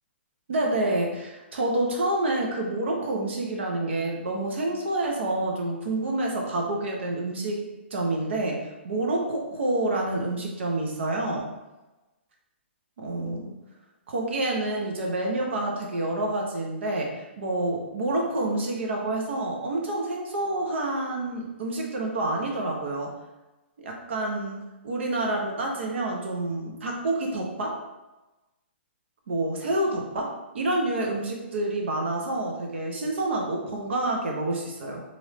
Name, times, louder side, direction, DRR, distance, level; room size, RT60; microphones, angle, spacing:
voice 1, 0.5-7.6 7.9-11.5 13.0-13.5 14.1-23.1 23.8-24.6 24.8-27.8 29.3-35.0, right 2 dB, 70° right, 0 dB, 0.9 m, -28 dB
3.2 x 2.6 x 3.0 m, 1.1 s
hypercardioid pair, 150°, 7 cm